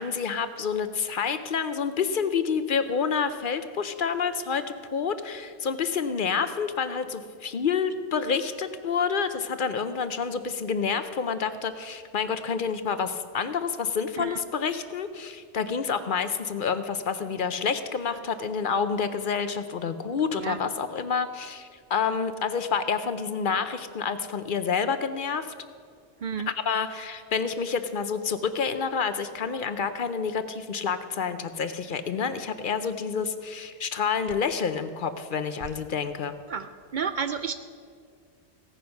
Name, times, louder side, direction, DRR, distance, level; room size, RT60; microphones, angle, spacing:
voice 1, 0.0-4.6 4.9-25.5 26.6-36.3, left 6 dB, 55° left, 11 dB, 0.8 m, -28 dB
voice 2, 36.9-37.5, right 6 dB, 60° right, 10 dB, 0.6 m, -30 dB
16.0 x 9.5 x 5.8 m, 2.1 s
omnidirectional pair, 1.1 m